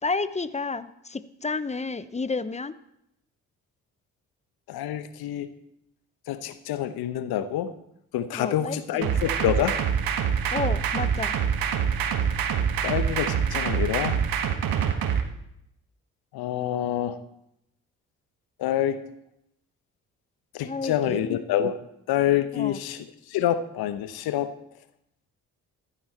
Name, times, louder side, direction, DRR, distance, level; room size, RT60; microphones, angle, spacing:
voice 1, 0.0-2.7 8.3-9.1 10.5-11.4 20.6-21.2 22.5-22.8, left 4 dB, 15° left, 15 dB, 0.8 m, -31 dB
voice 2, 4.7-5.5 6.3-7.7 8.1-9.8 12.8-14.1 16.3-17.2 18.6-19.0 20.5-21.8 22.1-24.5, left 11 dB, 65° left, 12 dB, 1.1 m, -27 dB
sound 1, 9.0-15.2, right 7 dB, 60° right, 1.5 m, -25 dB
14.5 x 11.5 x 4.3 m, 0.79 s
hypercardioid pair, 45°, 40 cm